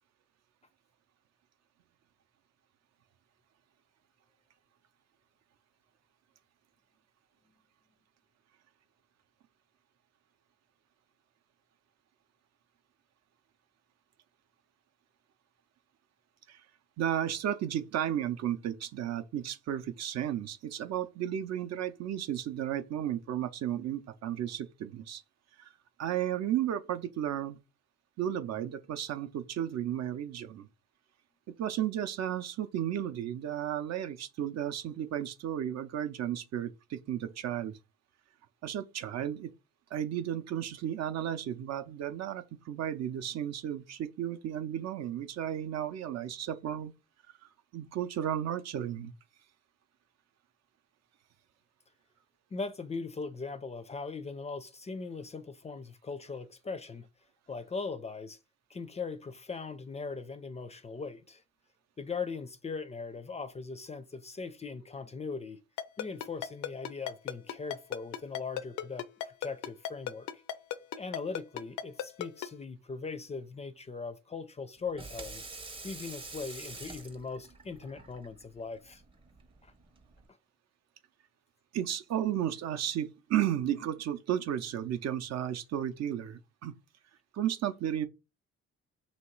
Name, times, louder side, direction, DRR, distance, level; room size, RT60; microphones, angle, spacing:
voice 1, 17.0-25.2 25.6-25.7 26.0-27.6 28.2-30.7 31.6-37.8 38.6-39.5 39.9-46.9 47.7-49.1 81.7-86.7 87.3-88.1, right 10 dB, 65° right, 0.5 m, -33 dB
voice 2, 52.5-57.1 57.5-58.4 58.7-61.4 62.0-65.6 66.0-70.4 70.9-75.4 75.8-79.0 79.6-79.7, left 4 dB, 25° left, 0.4 m, -40 dB
Ringtone, 65.8-72.5, left 11 dB, 90° left, 0.5 m, -34 dB
Water tap faucet / Sink (filling or washing), 74.8-80.3, right 3 dB, 20° right, 0.6 m, -47 dB
3.0 x 2.9 x 4.4 m
cardioid pair, 105°, 29 cm